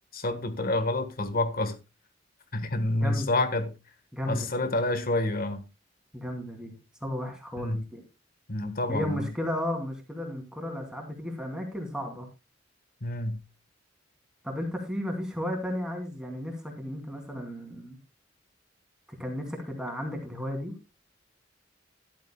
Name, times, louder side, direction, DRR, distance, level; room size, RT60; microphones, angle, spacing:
voice 1, 0.1-1.8 2.5-3.7 4.3-5.6 7.6-7.8 8.5-9.3 13.0-13.4, left 2 dB, 50° left, 1.4 m, -28 dB
voice 2, 3.0-3.4 4.1-4.6 6.1-6.7 7.0-8.0 8.9-12.3 14.4-18.0 19.2-20.7, left 1 dB, 5° right, 2.7 m, -34 dB
13.5 x 11.5 x 2.3 m
head